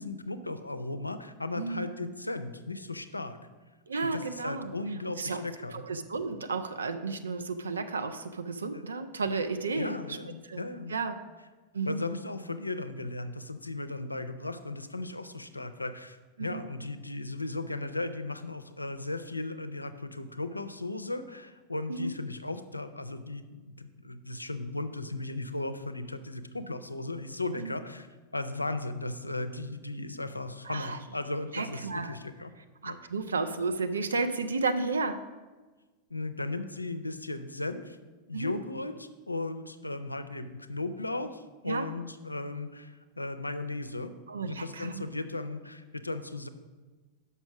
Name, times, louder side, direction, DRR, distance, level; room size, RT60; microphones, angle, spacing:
voice 1, 0.0-3.4 4.0-5.8 8.7-8.9 9.8-11.0 11.9-23.6 24.0-28.1 28.3-32.5 32.8-33.0 36.1-38.0 38.3-44.1 44.4-46.5, left 2 dB, 85° left, 10 dB, 0.4 m, -36 dB
voice 2, 1.5-2.1 3.9-4.7 5.2-5.4 5.7-10.2 10.5-10.6 10.9-11.2 11.7-12.0 16.4-16.6 21.9-22.1 27.6-27.7 30.6-31.0 31.5-32.2 32.8-35.3 38.3-38.5 41.7-41.9 44.3-45.0, right 3 dB, 75° right, 8 dB, 0.4 m, -32 dB
6.1 x 5.5 x 5.9 m, 1.3 s
figure-of-eight pair, 90°, 0 cm